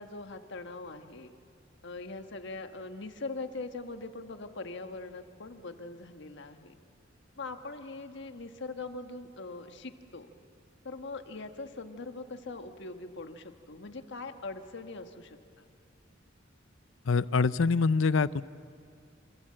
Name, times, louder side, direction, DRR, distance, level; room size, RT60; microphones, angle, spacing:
voice 1, 0.0-1.3 1.8-6.8 7.4-10.3 10.8-15.6, left 3 dB, 65° left, 7 dB, 1.4 m, -42 dB
voice 2, 17.1-18.4, left 4 dB, 80° left, 17 dB, 0.6 m, -25 dB
28.0 x 26.5 x 7.7 m, 2.3 s
head